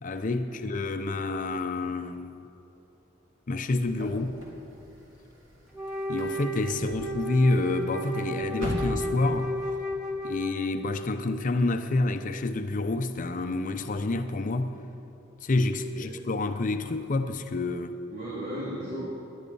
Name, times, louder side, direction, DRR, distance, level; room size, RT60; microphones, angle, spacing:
voice 1, 0.0-2.4 3.5-4.4 6.1-9.5 10.2-14.7 15.4-18.0, left 2 dB, 40° left, 0.6 m, -28 dB
sound 1, 3.8-9.7, equal, 80° right, 3.1 m, -40 dB
Wind instrument woodwind instrument, 5.7-10.9, equal, 5° right, 1.7 m, -33 dB
voice 2, 15.8-16.2 18.1-19.1, right 1 dB, 50° right, 3.0 m, -36 dB
20.0 x 11.0 x 5.4 m
head